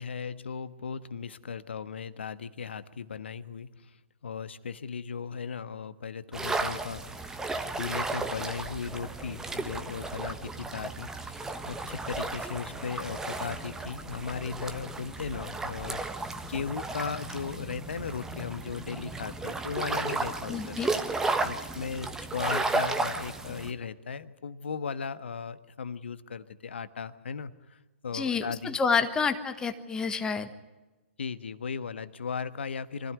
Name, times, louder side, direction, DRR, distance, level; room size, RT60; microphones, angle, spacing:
voice 1, 0.0-4.0 4.2-7.4 7.7-20.8 21.4-28.8 31.2-33.1, left 6 dB, 65° left, 13 dB, 1.3 m, -37 dB
sound 1, 6.3-23.7, right 3 dB, 5° right, 1.3 m, -34 dB
voice 2, 20.5-20.9 28.1-30.5, left 5 dB, 10° left, 8 dB, 1.4 m, -28 dB
24.5 x 16.0 x 9.6 m, 1.2 s
figure-of-eight pair, 125°, 7 cm